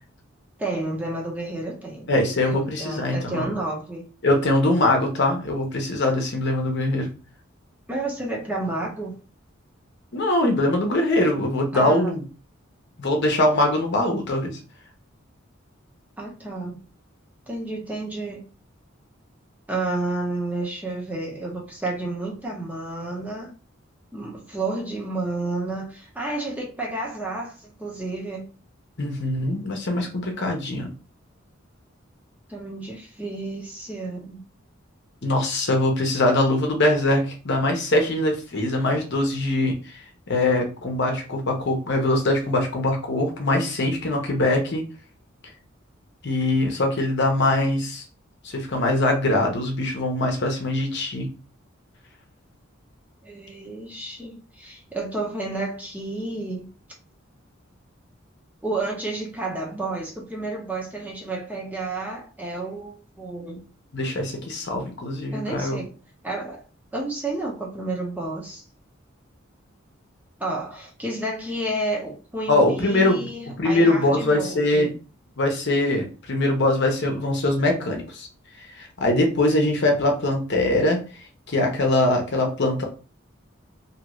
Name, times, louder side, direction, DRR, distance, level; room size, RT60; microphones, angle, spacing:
voice 1, 0.6-2.1 2.4-4.1 7.9-9.2 11.7-12.2 16.2-16.8 17.5-18.5 19.7-23.6 24.1-28.5 32.5-34.4 53.2-56.7 58.6-63.6 65.3-66.0 66.2-66.6 66.9-68.6 70.4-74.9, right 2 dB, 10° right, 0.7 m, -31 dB
voice 2, 2.1-3.5 4.2-7.1 10.1-12.2 13.0-14.5 29.0-30.9 35.2-39.8 40.3-44.8 46.2-48.0 48.4-51.3 63.9-65.8 72.5-73.3 73.6-74.9 75.4-78.3 78.8-81.0 81.5-82.8, left 1 dB, 60° left, 0.8 m, -22 dB
2.8 x 2.5 x 3.0 m
head